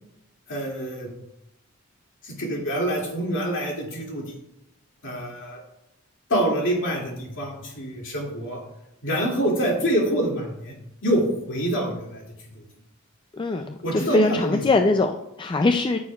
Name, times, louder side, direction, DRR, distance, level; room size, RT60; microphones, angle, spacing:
voice 1, 0.5-1.1 2.2-4.4 5.0-5.6 6.3-8.6 9.0-10.8 11.0-12.2 12.5-12.6 13.8-14.6, right 1 dB, 65° left, -2 dB, 2.4 m, -26 dB
voice 2, 13.3-16.0, left 2 dB, 20° left, 6 dB, 0.3 m, -22 dB
14.0 x 6.3 x 2.4 m, 0.85 s
head